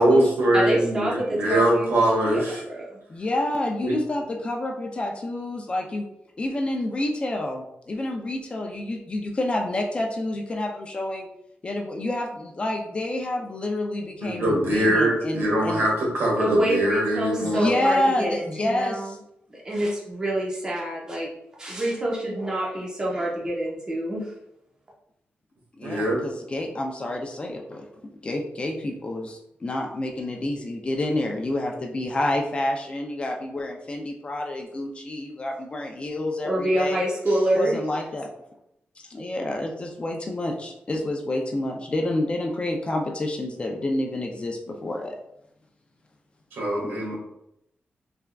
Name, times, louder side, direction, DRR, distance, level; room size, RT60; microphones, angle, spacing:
voice 1, 0.0-2.6 3.8-3.9 14.3-17.7 25.8-26.2 46.5-47.2, right 1 dB, 80° right, -3 dB, 1.4 m, -22 dB
voice 2, 0.5-2.0 2.2-3.0 16.4-19.2 19.5-21.3 21.6-24.3 36.4-37.8, right 1 dB, 20° right, -4 dB, 0.8 m, -26 dB
voice 3, 3.1-6.1 6.4-11.3 11.6-15.8 17.4-19.2 25.8-37.0 37.5-38.3 39.0-45.2 46.8-47.2, left 1 dB, 30° left, 1 dB, 0.4 m, -28 dB
3.5 x 3.4 x 2.2 m, 0.80 s
wide cardioid pair, 160°, 4 cm